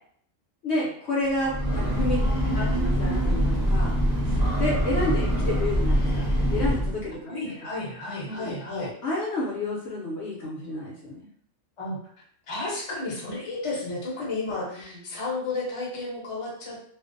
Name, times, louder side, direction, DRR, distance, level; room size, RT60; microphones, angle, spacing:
voice 1, 0.6-2.2 2.5-3.9 4.2-7.4 8.3-8.5 9.0-11.3 14.7-15.0, left 2 dB, 65° left, -4 dB, 0.8 m, -30 dB
Breathing / Train, 1.3-7.1, equal, 20° right, 0.7 m, -24 dB
voice 2, 1.4-2.7 7.3-8.9 11.8-12.0 12.5-16.9, left 2 dB, 30° left, -5 dB, 0.6 m, -33 dB
2.5 x 2.1 x 2.5 m, 0.65 s
omnidirectional pair, 1.3 m